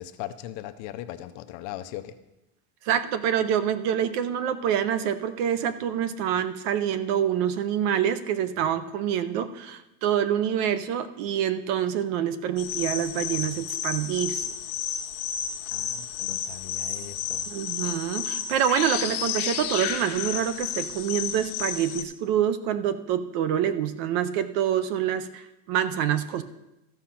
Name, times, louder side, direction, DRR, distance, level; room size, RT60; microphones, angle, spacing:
voice 1, 0.0-2.2 15.7-17.5, left 13 dB, 40° left, 11 dB, 0.6 m, -39 dB
voice 2, 2.8-14.5 17.5-26.4, right 9 dB, 45° right, 12 dB, 0.5 m, -26 dB
sound 1, 12.6-22.0, left 9 dB, 60° left, 1.1 m, -32 dB
13.5 x 5.1 x 5.8 m, 0.93 s
supercardioid pair, 160°, 46 cm